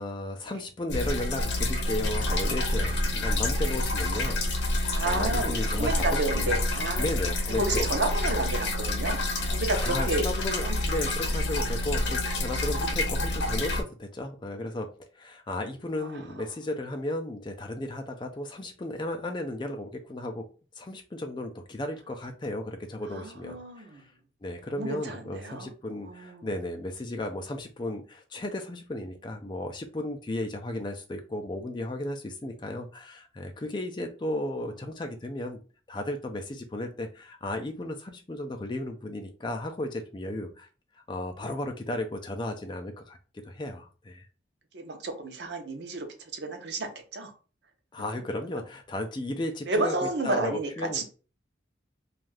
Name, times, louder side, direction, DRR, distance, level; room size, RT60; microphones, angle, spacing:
voice 1, 0.0-6.6 7.0-7.9 9.7-14.9 15.2-20.4 20.8-24.1 24.4-35.6 35.9-40.7 41.1-43.2 43.4-44.3 47.9-51.0, left 1 dB, 25° left, 5 dB, 0.4 m, -34 dB
sound 1, 0.9-13.8, left 1 dB, 75° left, 0.7 m, -28 dB
voice 2, 4.9-7.1 7.6-9.2 9.5-10.2 10.6-10.8 16.0-16.2 23.1-24.0 24.8-25.7 26.0-26.5 44.7-47.3 49.7-51.0, right 2 dB, 70° right, 5 dB, 0.7 m, -31 dB
2.6 x 2.4 x 3.2 m, 0.36 s
head